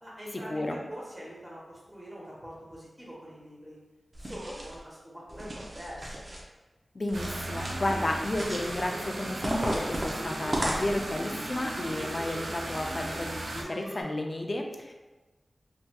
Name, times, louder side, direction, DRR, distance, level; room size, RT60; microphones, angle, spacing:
voice 1, 0.0-3.8 4.2-6.2, equal, 20° right, -7 dB, 1.4 m, -44 dB
sound 1, 4.1-4.8 5.3-6.4 7.1-8.0 8.3-8.8 9.4-11.2, right 1 dB, 45° right, 0.6 m, -35 dB
voice 2, 6.9-14.9, left 1 dB, 45° left, 3 dB, 0.4 m, -32 dB
sound 2, 7.1-13.6, right 2 dB, 85° right, 0.4 m, -37 dB
sound 3, 7.3-14.0, equal, 65° right, 1.1 m, -43 dB
3.3 x 2.8 x 2.3 m, 1.2 s
wide cardioid pair, 65°, 0 cm